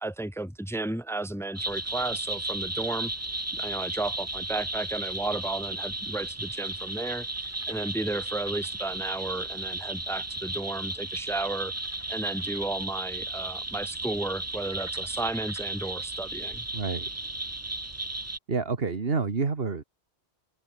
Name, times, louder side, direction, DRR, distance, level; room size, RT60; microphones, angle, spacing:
voice 1, 0.0-3.1 3.5-7.3 7.7-11.7 12.1-16.7, right 2 dB, 5° left, 0.7 m, -33 dB
sound 1, 1.6-18.4, right 2 dB, 15° right, 1.2 m, -34 dB
voice 2, 16.7-17.1 18.5-19.8, right 4 dB, 60° right, 2.0 m, -28 dB
omnidirectional pair, 1.1 m